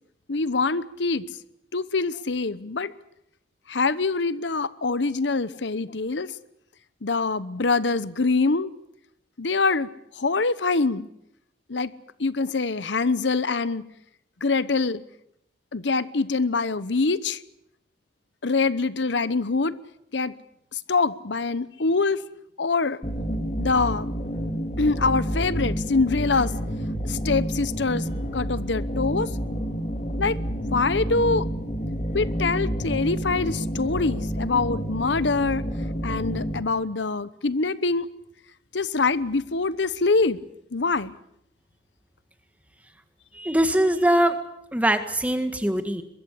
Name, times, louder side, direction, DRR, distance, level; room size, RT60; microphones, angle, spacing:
voice 1, 0.3-1.2 1.7-2.9 3.7-6.3 7.0-8.7 9.4-9.9 10.2-11.1 11.7-11.9 12.2-13.8 14.4-15.0 15.7-17.4 18.4-19.8 20.1-20.3 20.7-22.2 22.6-23.0 23.6-24.1 24.8-26.5 27.1-28.0 28.3-29.3 30.2-30.4 30.7-31.5 32.1-35.6 36.0-38.1 38.7-40.4 40.7-41.1, left 3 dB, 75° left, 0.9 m, -24 dB
sound 1, 23.0-36.6, equal, 40° left, 3.7 m, -29 dB
voice 2, 43.3-44.4 44.7-46.0, right 1 dB, 10° right, 1.8 m, -22 dB
23.0 x 22.0 x 8.3 m
head